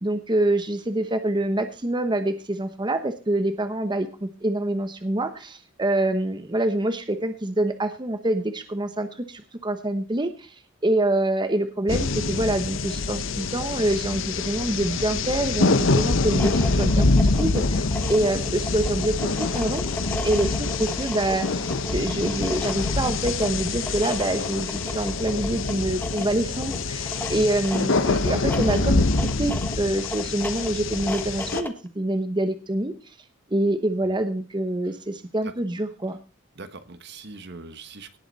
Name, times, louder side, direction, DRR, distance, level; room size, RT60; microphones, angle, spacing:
voice 1, 0.0-10.5 10.8-19.8 20.2-32.9 33.5-36.2, right 1 dB, 25° right, 8 dB, 1.0 m, -26 dB
sound 1, 11.9-31.6, left 3 dB, 75° left, 0.9 m, -25 dB
sound 2, 16.2-31.9, left 1 dB, 10° left, 1.3 m, -36 dB
voice 2, 36.5-38.2, right 3 dB, 60° right, 10 dB, 1.3 m, -42 dB
18.0 x 7.9 x 4.1 m, 0.34 s
head